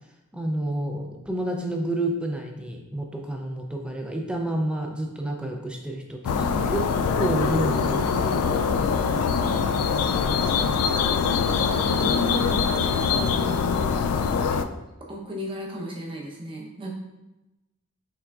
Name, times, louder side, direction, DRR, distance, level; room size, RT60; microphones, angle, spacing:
voice 1, 0.3-6.8 7.1-8.5 10.1-10.5, right 1 dB, 5° right, 2 dB, 0.4 m, -30 dB
sound 1, 6.2-14.6, left 5 dB, 85° left, 0.3 m, -23 dB
voice 2, 8.7-9.5 11.8-13.5 15.1-16.9, right 1 dB, 25° right, -2 dB, 0.8 m, -37 dB
5.7 x 3.6 x 2.4 m, 1.0 s
head